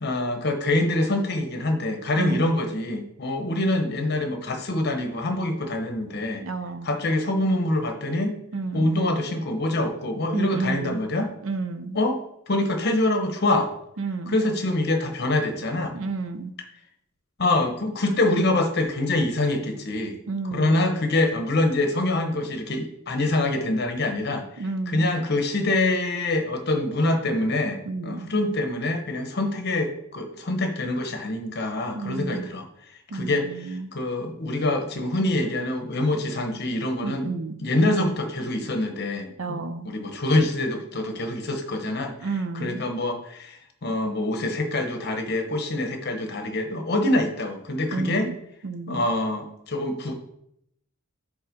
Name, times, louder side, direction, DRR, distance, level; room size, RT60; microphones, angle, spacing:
voice 1, 0.0-6.4 6.8-8.3 8.7-11.3 11.9-12.2 12.5-13.7 14.3-16.0 17.4-20.2 20.5-32.6 33.1-37.3 37.6-42.1 42.6-48.3 48.9-50.1, left 2 dB, 55° left, 5 dB, 1.0 m, -25 dB
voice 2, 2.2-2.5 6.4-6.9 8.5-8.9 10.3-11.0 11.4-12.0 14.0-14.4 15.9-16.5 20.3-20.8 24.6-25.1 27.8-28.3 31.9-32.5 33.1-33.9 37.0-37.5 39.4-39.9 42.2-42.8 47.9-48.4 48.6-49.0, right 3 dB, 75° right, 10 dB, 0.6 m, -31 dB
5.6 x 4.1 x 5.2 m, 0.74 s
head